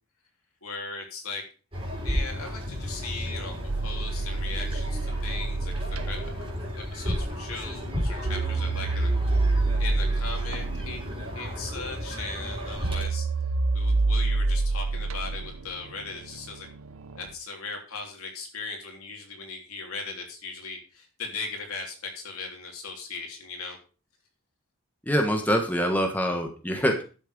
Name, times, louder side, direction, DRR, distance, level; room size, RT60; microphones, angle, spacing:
voice 1, 0.6-1.4 1.8-6.5 6.7-9.1 9.8-13.3 13.7-16.7 17.1-23.8, left 4 dB, 80° left, 2 dB, 3.3 m, -38 dB
sound 1, 1.7-13.0, equal, 25° right, 3.8 m, -33 dB
sound 2, 3.3-6.5 8.2-17.3, right 3 dB, 75° right, 0.9 m, -28 dB
voice 2, 25.0-27.0, equal, 5° left, 3 dB, 1.4 m, -25 dB
11.5 x 6.7 x 5.2 m, 0.35 s
head